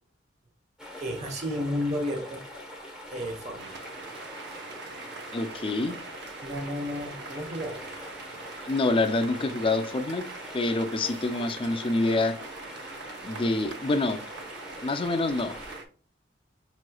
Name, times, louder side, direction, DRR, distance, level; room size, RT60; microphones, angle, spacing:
sound 1, 0.8-15.8, left 1 dB, 5° right, 0.9 m, -44 dB
voice 1, 1.0-2.4 3.1-3.7 6.4-7.9, equal, 40° right, 0.9 m, -32 dB
sound 2, 3.6-15.8, right 3 dB, 65° right, 0.7 m, -43 dB
voice 2, 5.3-5.9 8.7-10.3 10.5-12.4 13.2-14.2 14.8-15.5, left 2 dB, 30° left, 0.4 m, -26 dB
5.5 x 3.0 x 2.2 m
head